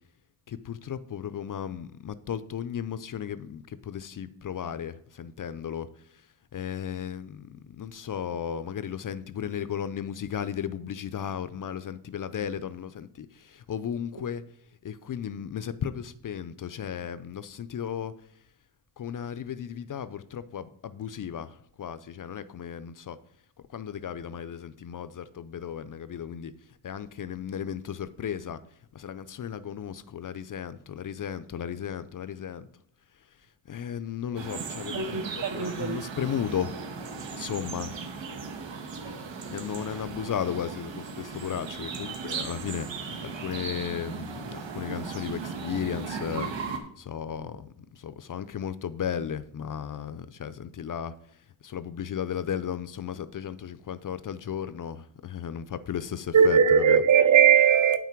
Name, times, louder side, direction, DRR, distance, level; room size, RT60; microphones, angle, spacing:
voice 1, 0.5-6.3 6.5-14.4 14.8-18.1 19.0-23.2 23.7-26.5 26.8-28.6 28.9-32.7 33.2-33.3 33.7-38.0 39.5-51.1 51.6-57.0, left 8 dB, 45° left, 0.5 m, -35 dB
sound 1, 34.4-46.8, right 5 dB, 75° right, 1.5 m, -37 dB
voice 2, 34.9-36.1 56.3-58.0, right 7 dB, 40° right, 0.7 m, -20 dB
8.9 x 5.9 x 4.5 m
wide cardioid pair, 120°, 45 cm